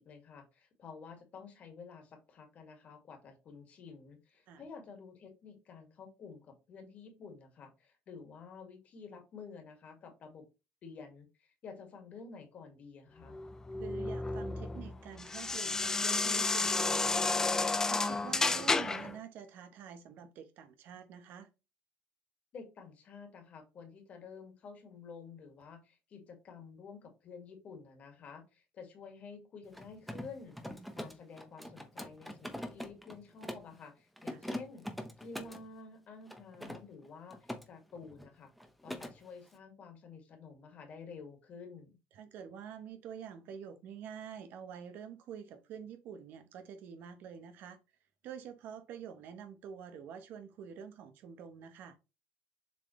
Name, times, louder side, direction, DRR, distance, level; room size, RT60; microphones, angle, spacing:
voice 1, 0.0-10.5 10.8-13.4 22.5-34.9 35.2-38.5 38.8-42.0, left 5 dB, 45° left, 2.1 m, -51 dB
sound 1, 13.3-19.1, left 3 dB, 15° left, 0.5 m, -31 dB
voice 2, 13.8-21.5 34.3-34.4 42.1-47.8 48.2-52.0, right 8 dB, 70° right, 1.1 m, -47 dB
Mechanisms, 29.6-33.7 34.2-35.6 36.3-37.6 37.9-38.3 38.6-39.1, equal, ahead, 0.9 m, -43 dB
7.3 x 4.0 x 3.2 m
cardioid pair, 140°, 3 cm